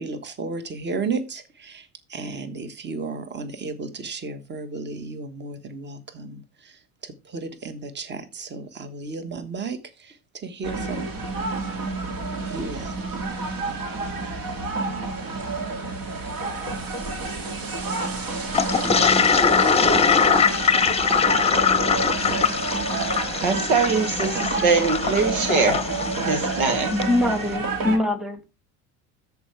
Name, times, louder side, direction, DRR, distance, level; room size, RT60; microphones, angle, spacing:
voice 1, 0.0-11.2 12.4-13.0, right 4 dB, 25° right, 1.4 m, -34 dB
sound 1, 10.6-28.0, right 3 dB, 55° right, 2.4 m, -29 dB
Toilet flush, 18.5-27.1, left 6 dB, 15° left, 0.9 m, -22 dB
voice 2, 23.4-25.8 26.3-26.9, right 4 dB, 85° right, 2.0 m, -22 dB
voice 3, 26.9-28.5, left 1 dB, ahead, 1.6 m, -23 dB
13.5 x 4.8 x 3.3 m
hypercardioid pair, 80°, 42 cm